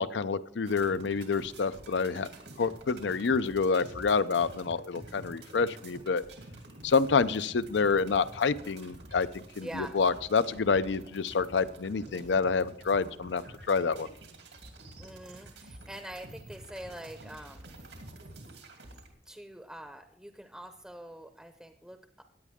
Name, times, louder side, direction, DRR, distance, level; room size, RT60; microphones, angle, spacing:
voice 1, 0.0-2.3 2.6-6.2 6.8-13.4 13.7-14.1, left 5 dB, 90° left, 15 dB, 0.5 m, -28 dB
sound 1, 0.7-19.1, right 2 dB, 90° right, 2.6 m, -49 dB
voice 2, 9.6-9.9 15.0-17.7 19.2-22.2, right 1 dB, 5° right, 7 dB, 0.6 m, -44 dB
16.5 x 10.0 x 3.6 m, 0.66 s
head